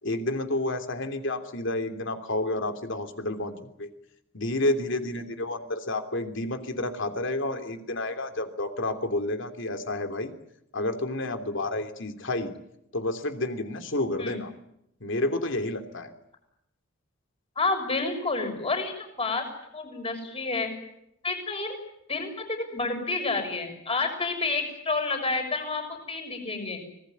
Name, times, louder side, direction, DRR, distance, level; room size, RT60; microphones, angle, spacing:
voice 1, 0.0-3.9 4.3-10.3 10.7-12.5 12.9-14.5 15.0-16.1, left 2 dB, 65° left, 7 dB, 3.1 m, -30 dB
voice 2, 17.6-19.5 19.7-20.7 21.2-21.8 22.1-26.8, left 3 dB, 30° left, 5 dB, 6.4 m, -29 dB
25.5 x 19.0 x 9.6 m, 0.79 s
head